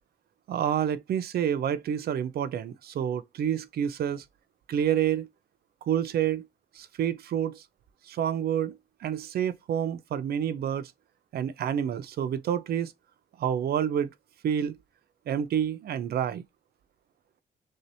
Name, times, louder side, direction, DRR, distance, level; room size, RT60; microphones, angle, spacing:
voice 1, 0.5-4.2 4.7-5.3 5.9-6.4 6.7-7.6 8.1-10.9 11.3-12.9 13.4-14.1 14.4-14.8 15.3-16.4, right 9 dB, 65° right, 0.7 m, -28 dB
6.4 x 2.8 x 2.7 m
cardioid pair, 115°, 17 cm